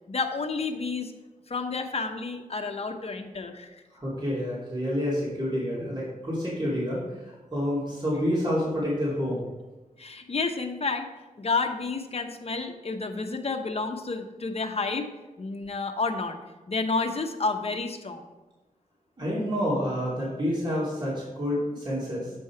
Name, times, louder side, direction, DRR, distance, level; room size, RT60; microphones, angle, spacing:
voice 1, 0.1-1.1 1.5-3.7 10.0-11.1 11.4-15.1 15.4-16.4 16.7-18.3, left 4 dB, 45° left, 5 dB, 0.9 m, -30 dB
voice 2, 3.9-9.5 19.2-22.3, equal, 30° right, -7 dB, 2.7 m, -28 dB
8.5 x 5.4 x 4.5 m, 1.1 s
wide cardioid pair, 75°, 14 cm